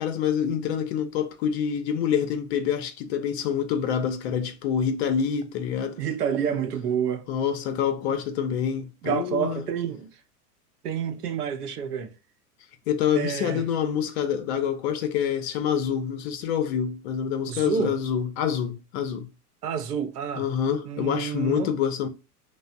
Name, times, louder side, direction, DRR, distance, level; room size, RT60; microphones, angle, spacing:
voice 1, 0.0-6.0 7.3-9.7 12.9-19.3 20.4-22.1, left 8 dB, 45° left, 0.5 m, -26 dB
voice 2, 6.0-7.3 9.0-10.1 10.8-12.1 13.2-13.6 17.5-18.0 19.6-20.5 20.9-21.7, right 7 dB, 80° right, 0.7 m, -28 dB
3.2 x 2.0 x 2.4 m
hypercardioid pair, 100°, 47 cm